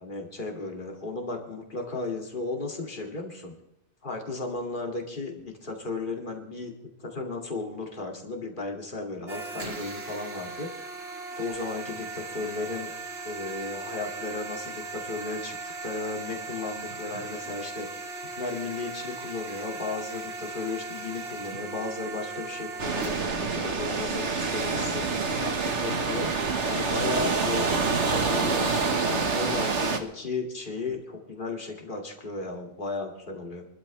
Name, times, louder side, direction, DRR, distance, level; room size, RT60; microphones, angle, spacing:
voice 1, 0.0-3.5 4.0-6.7 7.0-10.7 11.4-12.9 13.2-17.9 18.4-25.1 25.4-26.3 26.7-33.7, left 3 dB, 45° left, 1 dB, 2.6 m, -35 dB
sound 1, 9.3-23.8, right 3 dB, 60° right, 1.8 m, -38 dB
sound 2, 22.8-30.0, right 4 dB, 85° right, 1.8 m, -27 dB
25.0 x 13.0 x 3.3 m, 0.83 s
omnidirectional pair, 1.2 m